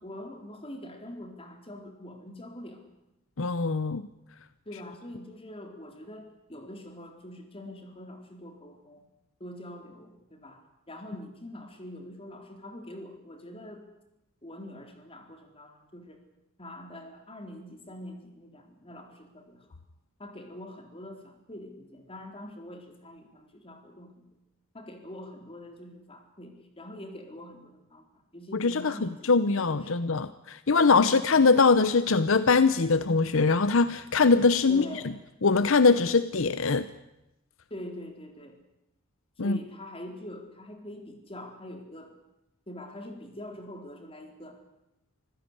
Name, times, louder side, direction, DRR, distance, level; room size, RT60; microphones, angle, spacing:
voice 1, 0.0-2.8 4.7-9.0 9.4-10.6 10.9-13.8 14.4-16.2 16.6-19.6 20.2-24.3 24.7-28.0 28.3-29.3 29.6-29.9 31.0-31.2 34.7-35.2 37.7-38.6 39.4-42.1 42.7-44.6, left 1 dB, 25° left, 5 dB, 3.9 m, -44 dB
voice 2, 3.4-4.1 28.5-35.0 35.4-36.9 39.4-39.6, left 4 dB, 65° left, 14 dB, 0.8 m, -22 dB
25.0 x 16.0 x 9.9 m, 0.89 s
head